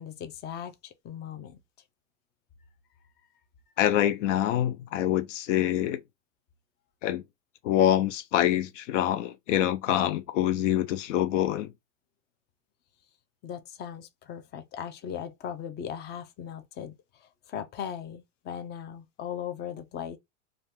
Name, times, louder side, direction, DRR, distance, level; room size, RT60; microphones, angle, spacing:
voice 1, 0.0-1.6 13.4-20.2, left 8 dB, 30° left, 0.5 m, -38 dB
voice 2, 3.8-6.0 7.0-7.2 7.6-11.7, left 12 dB, 80° left, 0.5 m, -25 dB
2.6 x 2.4 x 3.4 m
supercardioid pair, 125°, 37 cm